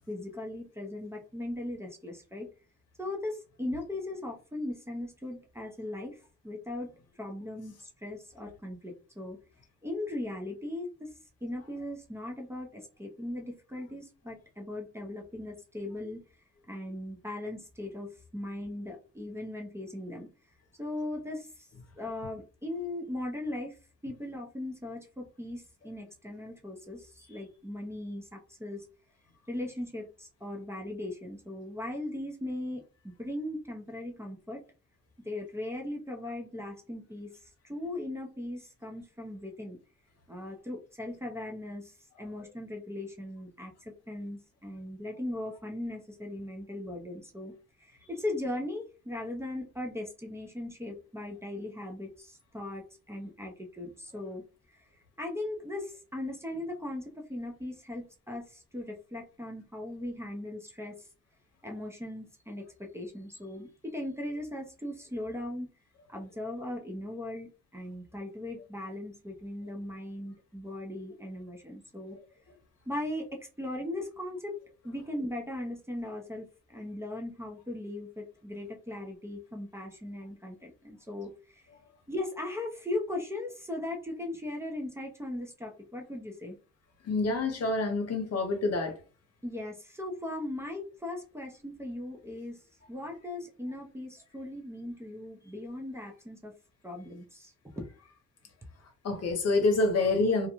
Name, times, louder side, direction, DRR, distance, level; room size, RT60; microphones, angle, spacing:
voice 1, 0.1-2.5 3.0-6.9 7.2-9.4 9.8-11.1 11.4-16.2 16.7-20.3 20.8-21.7 21.9-23.8 24.0-28.9 29.5-34.6 35.2-39.8 40.3-47.5 47.8-54.4 54.8-54.9 55.2-61.1 61.6-65.7 66.1-72.2 72.9-74.6 74.8-81.7 82.1-86.5 89.4-92.6 92.9-96.5 96.8-97.9, left 1 dB, 10° right, 0.6 m, -38 dB
voice 2, 87.0-88.9 99.0-100.5, left 3 dB, 55° left, 0.9 m, -27 dB
2.5 x 2.1 x 2.9 m
cardioid pair, 90°, 30 cm